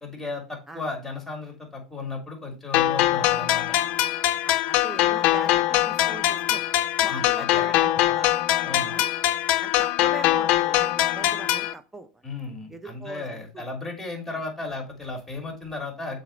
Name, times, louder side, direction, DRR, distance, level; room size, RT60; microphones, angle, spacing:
voice 1, 0.0-3.8 7.1-7.7 8.6-8.9 12.2-16.2, left 3 dB, 10° left, 3 dB, 3.0 m, -35 dB
sound 1, 2.7-11.7, left 14 dB, 55° left, 0.5 m, -22 dB
voice 2, 4.4-6.6 7.0-8.4 8.9-9.1 9.6-12.2 12.7-13.7, right 1 dB, 10° right, 9 dB, 0.8 m, -40 dB
7.0 x 4.3 x 3.9 m, 0.34 s
hypercardioid pair, 85°, 2 cm